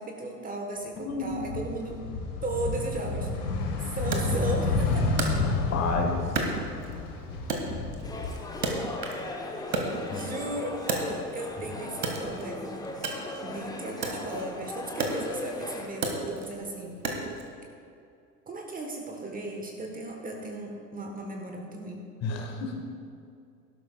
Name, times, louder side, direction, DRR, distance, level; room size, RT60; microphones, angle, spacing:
voice 1, 0.0-2.0 2.4-3.3 3.8-5.1 10.1-12.9 13.4-17.0 18.5-22.0, right 2 dB, 15° right, 2 dB, 1.3 m, -36 dB
voice 2, 1.0-1.4 5.4-6.2 10.1-10.3 11.6-11.7 22.2-22.8, left 3 dB, 30° left, 3 dB, 1.6 m, -31 dB
sound 1, 1.1-9.2 9.6-10.7, left 3 dB, 65° left, 1.8 m, -30 dB
Wood, 4.1-5.9 6.3-7.1 7.5-9.3 9.6-11.5 11.9-17.5, right 3 dB, 75° right, 1.8 m, -33 dB
sound 2, 8.0-15.9, left 2 dB, 10° left, 1.0 m, -38 dB
17.5 x 12.0 x 2.3 m, 2.5 s
figure-of-eight pair, 80°, 49 cm